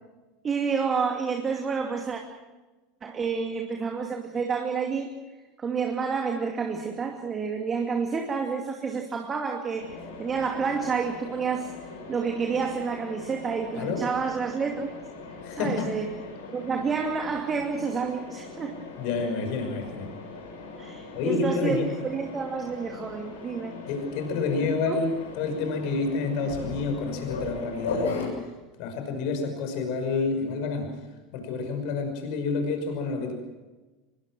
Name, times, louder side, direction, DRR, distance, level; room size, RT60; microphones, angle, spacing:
voice 1, 0.4-2.2 3.0-5.1 5.6-11.7 12.1-14.9 15.5-16.1 16.5-18.8 20.8-21.8 22.1-23.8 24.9-25.0, right 5 dB, 25° right, 3 dB, 2.5 m, -29 dB
Mechanisms, 9.8-28.3, left 3 dB, 70° left, 7.2 m, -39 dB
voice 2, 15.4-15.9 19.0-20.1 21.1-21.9 23.9-25.1 25.4-28.4 28.8-31.0 31.3-33.3, left 4 dB, 55° left, 5 dB, 5.7 m, -28 dB
25.5 x 21.5 x 6.2 m, 1.2 s
figure-of-eight pair, 80°, 0 cm